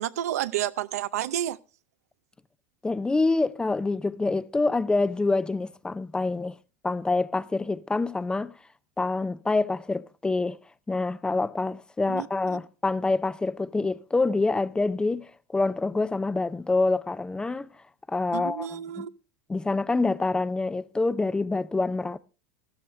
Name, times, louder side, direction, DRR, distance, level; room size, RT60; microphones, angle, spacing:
voice 1, 0.0-1.6 12.1-12.3 12.5-12.6 18.3-19.1, right 12 dB, 85° right, 0.6 m, -30 dB
voice 2, 2.8-6.6 6.8-8.5 9.0-10.6 10.9-17.7 18.1-19.1 19.5-22.2, left 3 dB, 10° left, 0.5 m, -26 dB
13.0 x 13.0 x 3.2 m
supercardioid pair, 110°, 8 cm